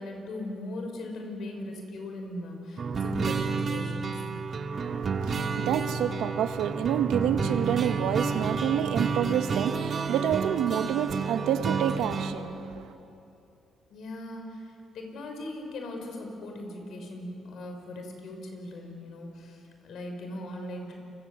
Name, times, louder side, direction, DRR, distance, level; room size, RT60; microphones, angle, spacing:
voice 1, 0.0-4.3 13.9-21.0, left 1 dB, 70° left, 3 dB, 6.3 m, -39 dB
sound 1, 2.8-12.3, right 5 dB, 45° right, 2.0 m, -30 dB
voice 2, 4.7-12.9, right 9 dB, 85° right, 8 dB, 1.5 m, -28 dB
29.0 x 24.5 x 8.4 m, 2.8 s
cardioid pair, 90°, 0 cm